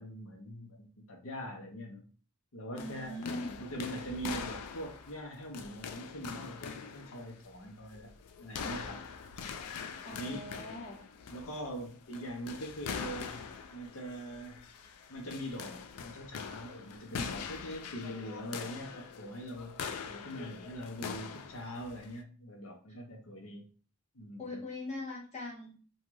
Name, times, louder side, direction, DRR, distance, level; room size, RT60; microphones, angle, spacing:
voice 1, 0.0-2.1 2.5-3.2 3.6-8.1 8.4-9.0 10.2-10.5 11.3-14.6 15.1-23.7 24.1-24.6, equal, 65° left, 1 dB, 0.8 m, -42 dB
voice 2, 2.7-3.6 10.0-11.0 24.4-25.8, left 1 dB, 30° left, -3 dB, 1.0 m, -41 dB
sound 1, 2.8-22.2, left 6 dB, 90° left, 0.3 m, -43 dB
2.7 x 2.3 x 3.1 m, 0.39 s
head